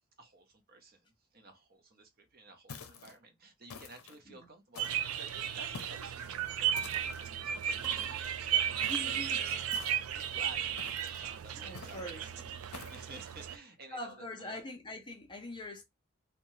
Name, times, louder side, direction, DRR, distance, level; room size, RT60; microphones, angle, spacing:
voice 1, 0.2-12.3 12.8-14.6, right 2 dB, 45° right, 0.6 m, -53 dB
sound 1, 2.7-3.2 3.7-4.2 4.7-5.2 5.7-6.1 6.8-7.3 8.8-9.2 9.7-10.2 10.8-11.2 11.7-12.1 12.7-13.1, left 5 dB, 90° left, 0.5 m, -48 dB
sound 2, 4.8-13.6, right 9 dB, 80° right, 0.3 m, -34 dB
sound 3, 7.8-9.2 10.3-11.2 12.3-13.3, right 2 dB, 20° right, 0.9 m, -54 dB
voice 2, 8.9-9.4 11.6-12.3 13.9-15.8, left 1 dB, 20° left, 0.5 m, -43 dB
2.7 x 2.1 x 3.0 m
head